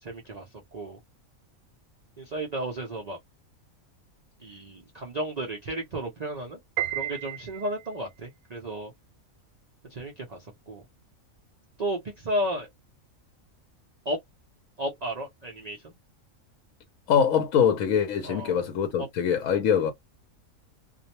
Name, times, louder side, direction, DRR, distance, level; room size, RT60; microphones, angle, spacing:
voice 1, 0.0-1.0 2.2-3.2 4.4-6.6 6.9-8.9 9.9-10.8 11.8-12.7 14.1-14.2 14.8-15.9 18.2-18.6 19.0-19.1, right 1 dB, 50° right, 0.5 m, -33 dB
Piano, 6.8-8.1, right 12 dB, 85° right, 1.0 m, -32 dB
voice 2, 17.1-19.9, left 8 dB, 75° left, 1.0 m, -23 dB
2.5 x 2.0 x 2.8 m
omnidirectional pair, 1.5 m